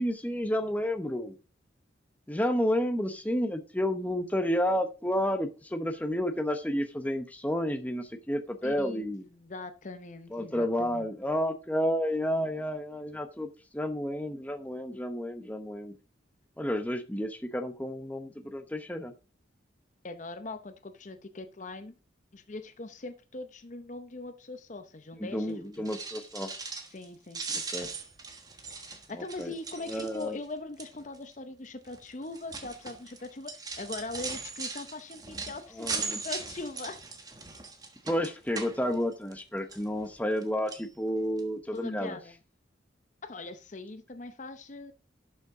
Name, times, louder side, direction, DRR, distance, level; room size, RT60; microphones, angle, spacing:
voice 1, 0.0-1.3 2.3-9.2 10.3-15.9 16.6-19.1 25.2-26.5 27.7-27.9 29.1-29.5 29.9-30.4 35.7-36.2 38.0-42.2, equal, 10° left, 7 dB, 0.9 m, -31 dB
voice 2, 8.6-11.1 20.0-21.9 22.3-25.6 26.9-27.6 29.1-37.0 41.7-42.3 43.2-44.9, left 2 dB, 40° left, 10 dB, 0.7 m, -41 dB
sound 1, 25.7-27.0 27.3-30.4 30.8-31.1 31.9-39.4 39.7-40.4 40.7-40.9 41.4-41.5 41.7-41.8, right 4 dB, 20° right, 1.3 m, -39 dB
11.5 x 6.9 x 3.7 m, 0.32 s
head